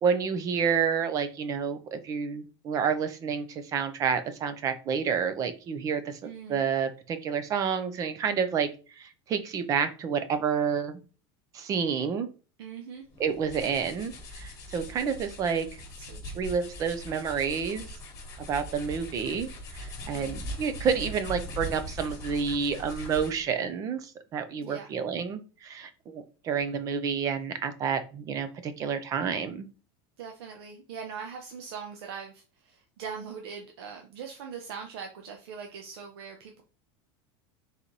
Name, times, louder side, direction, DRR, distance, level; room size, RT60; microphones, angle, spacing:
voice 1, 0.0-6.2 6.5-8.7 9.0-11.0 11.5-12.3 13.2-15.7 16.4-17.9 18.5-29.7, right 6 dB, 25° right, 10 dB, 0.5 m, -29 dB
voice 2, 6.2-6.6 12.6-13.1 16.0-16.5 20.1-20.3 24.6-24.9 30.2-36.6, right 6 dB, 85° right, 3 dB, 0.8 m, -41 dB
sound 1, 13.1-23.5, equal, 25° left, 1.5 m, -41 dB
4.1 x 3.1 x 3.9 m, 0.34 s
supercardioid pair, 165°, 13 cm